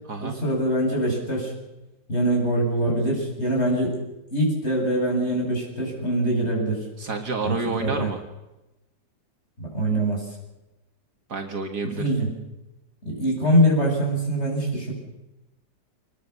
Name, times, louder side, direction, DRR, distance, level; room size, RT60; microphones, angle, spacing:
voice 1, 0.2-1.5 2.1-4.0 4.3-6.8 7.4-8.1 9.6-10.3 12.0-12.3 13.0-14.9, right 1 dB, 35° left, 0 dB, 8.2 m, -23 dB
voice 2, 7.0-8.2 11.3-12.1, right 4 dB, 60° right, 4 dB, 2.3 m, -29 dB
26.0 x 20.5 x 7.0 m, 0.98 s
omnidirectional pair, 2.0 m